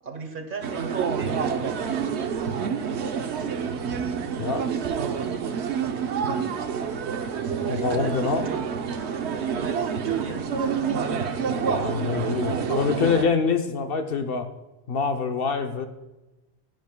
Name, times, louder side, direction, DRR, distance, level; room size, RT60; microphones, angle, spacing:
voice 1, 0.0-2.3 2.8-2.9 7.6-10.5, right 4 dB, 55° right, 7 dB, 1.0 m, -37 dB
sound 1, 0.6-13.3, right 6 dB, 80° right, 1.0 m, -28 dB
voice 2, 4.4-4.7 7.6-8.5 11.6-14.5 14.9-15.9, left 5 dB, 60° left, 6 dB, 0.9 m, -25 dB
16.0 x 10.5 x 2.2 m, 1.1 s
omnidirectional pair, 1.1 m